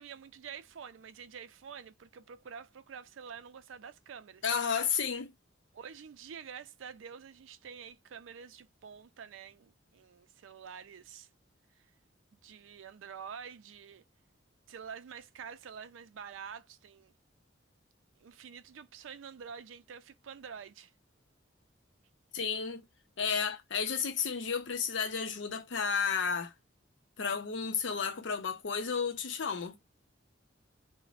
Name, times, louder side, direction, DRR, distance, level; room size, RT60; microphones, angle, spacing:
voice 1, 0.0-4.4 5.7-11.3 12.3-14.0 14.7-17.1 18.2-20.9, right 7 dB, 85° right, 0.4 m, -47 dB
voice 2, 4.4-5.3 22.3-22.8 23.2-26.5 27.2-29.8, left 6 dB, 70° left, 0.6 m, -32 dB
2.5 x 2.1 x 3.1 m
head